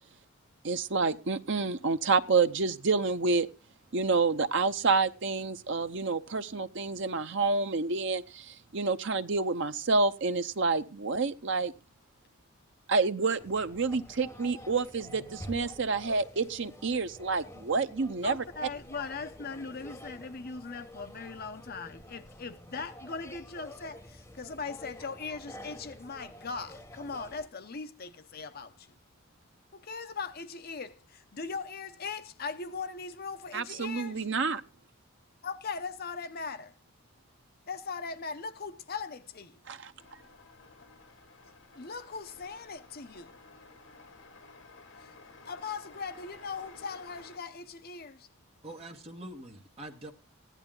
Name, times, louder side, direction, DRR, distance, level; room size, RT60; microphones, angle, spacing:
voice 1, 0.6-3.5 3.9-11.7 12.9-18.4 33.5-34.6 39.7-39.9, right 4 dB, 60° right, 0.8 m, -28 dB
sound 1, 13.4-27.5, equal, 10° left, 1.1 m, -49 dB
voice 2, 18.2-28.9 29.7-34.2 35.4-36.7 37.7-39.6 41.8-43.3 45.0-45.1 45.5-48.3, left 4 dB, 45° left, 0.8 m, -39 dB
sound 2, 40.0-47.4, left 3 dB, 70° left, 2.2 m, -54 dB
voice 3, 48.6-50.1, right 1 dB, 30° right, 1.7 m, -44 dB
15.5 x 11.0 x 3.8 m
head